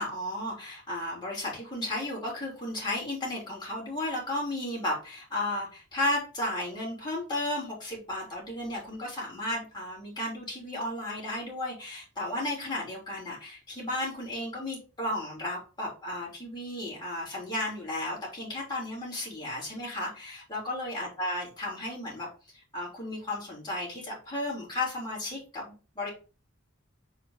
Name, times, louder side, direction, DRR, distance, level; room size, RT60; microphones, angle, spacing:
voice 1, 0.0-22.3 22.7-26.1, left 1 dB, 20° left, -4 dB, 3.6 m, -34 dB
5.1 x 3.9 x 5.6 m, 0.34 s
head